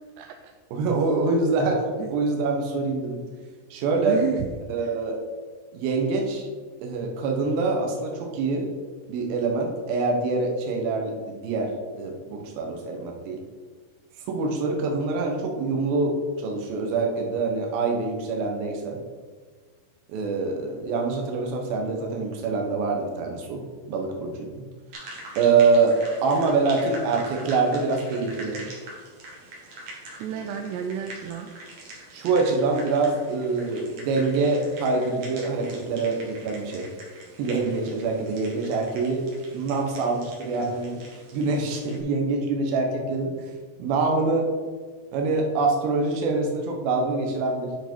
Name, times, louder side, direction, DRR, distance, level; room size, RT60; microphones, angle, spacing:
voice 1, 0.2-0.5 2.0-2.1 4.1-4.5 4.8-5.0 30.2-31.5, right 9 dB, 85° right, 5 dB, 2.6 m, -31 dB
voice 2, 0.7-3.2 3.7-4.2 4.7-5.2 5.7-6.5 6.8-8.7 9.1-13.4 14.3-19.0 20.1-23.6 23.9-24.6 25.4-28.6 32.1-36.9 37.4-41.0 41.3-43.5 43.8-44.5 45.1-47.7, right 3 dB, 65° right, 1 dB, 2.7 m, -25 dB
sound 1, 24.9-42.0, right 1 dB, 50° right, 2.5 m, -44 dB
10.0 x 4.9 x 4.6 m, 1.5 s
omnidirectional pair, 5.1 m